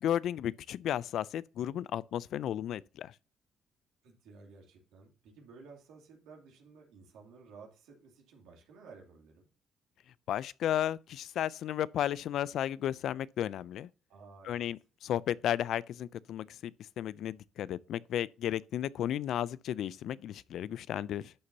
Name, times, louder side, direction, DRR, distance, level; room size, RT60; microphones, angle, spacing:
voice 1, 0.0-3.1 10.3-13.9 14.4-21.3, left 11 dB, 75° left, 0.4 m, -34 dB
voice 2, 4.0-9.5 14.1-14.7, right 4 dB, 85° right, 2.6 m, -54 dB
11.0 x 6.6 x 2.8 m
supercardioid pair, 65°, 0 cm